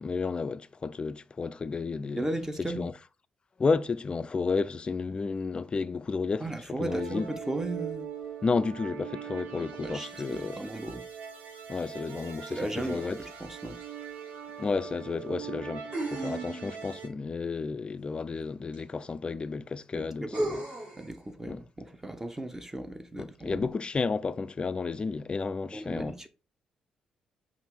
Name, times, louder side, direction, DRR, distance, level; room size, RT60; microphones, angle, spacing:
voice 1, 0.0-2.2 2.6-2.9 3.6-7.3 8.4-10.6 11.7-13.2 14.6-20.6 21.5-21.6 23.2-26.2, left 4 dB, 30° left, 0.3 m, -32 dB
voice 2, 2.1-2.8 6.4-8.1 9.6-11.0 12.5-13.8 19.9-20.6 21.0-23.7 25.7-26.3, right 1 dB, 15° right, 0.7 m, -36 dB
sound 1, 6.9-17.1, right 8 dB, 65° right, 0.8 m, -41 dB
sound 2, 13.8-13.9 15.9-16.9 18.7-18.8 20.3-21.1, right 1 dB, 40° right, 2.2 m, -33 dB
5.5 x 2.5 x 3.6 m
figure-of-eight pair, 40°, 3 cm